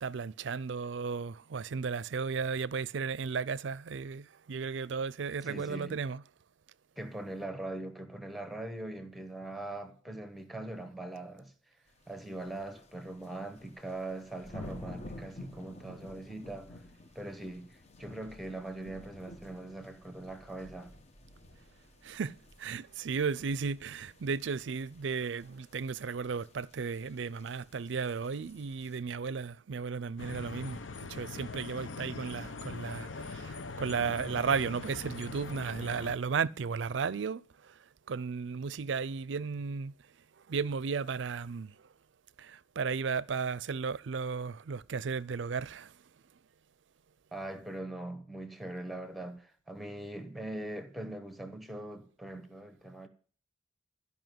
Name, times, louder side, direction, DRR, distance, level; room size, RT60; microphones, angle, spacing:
voice 1, 0.0-6.2 22.0-37.7 38.1-39.9 40.5-41.7 42.4-45.9, right 5 dB, 70° right, 0.5 m, -34 dB
voice 2, 5.4-6.0 7.0-11.5 12.1-16.8 17.1-20.9 47.3-53.1, right 1 dB, ahead, 1.2 m, -41 dB
sound 1, 11.9-29.0, left 1 dB, 35° left, 1.0 m, -52 dB
sound 2, 30.2-36.2, left 4 dB, 75° left, 0.7 m, -42 dB
12.5 x 5.5 x 9.3 m
head